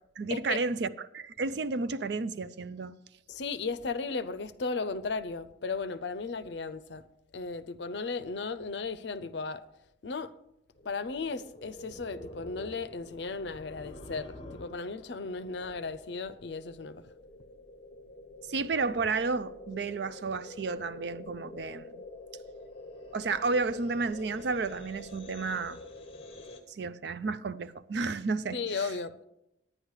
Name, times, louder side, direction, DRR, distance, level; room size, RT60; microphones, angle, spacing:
voice 1, 0.2-2.9 18.5-22.0 23.1-25.8 26.7-28.8, right 4 dB, 60° right, 0.4 m, -32 dB
voice 2, 3.3-7.0 7.3-9.6 10.0-10.3 10.8-17.0 28.5-29.1, left 4 dB, 65° left, 0.6 m, -35 dB
sound 1, 10.8-26.6, left 2 dB, 30° left, 1.1 m, -47 dB
10.0 x 9.7 x 4.8 m
head